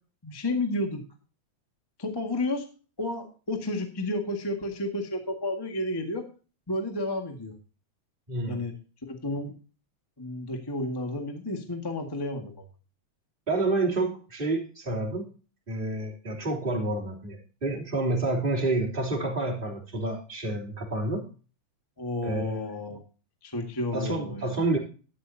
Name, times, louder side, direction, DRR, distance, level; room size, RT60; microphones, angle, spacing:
voice 1, 0.2-1.0 2.0-2.6 3.0-6.2 6.7-7.5 8.5-8.7 9.1-9.5 10.2-12.5 22.0-23.0 23.4-24.6, left 1 dB, 10° left, 3 dB, 1.2 m, -31 dB
voice 2, 8.3-8.6 13.5-15.3 15.7-21.2 22.2-22.6 23.9-24.8, right 2 dB, 15° right, -3 dB, 3.1 m, -29 dB
13.0 x 10.5 x 2.7 m, 0.36 s
omnidirectional pair, 3.3 m